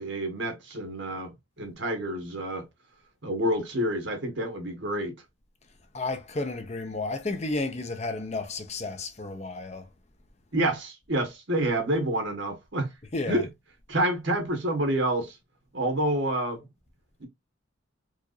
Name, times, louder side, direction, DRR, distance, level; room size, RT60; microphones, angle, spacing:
voice 1, 0.0-2.7 3.2-5.1 10.5-12.9 13.3-13.5 13.9-15.4 15.7-16.6 17.2-17.3, right 1 dB, 70° right, 1.6 m, -28 dB
voice 2, 5.9-9.9 13.1-13.5, left 2 dB, 35° left, 0.7 m, -32 dB
4.7 x 2.5 x 2.5 m
head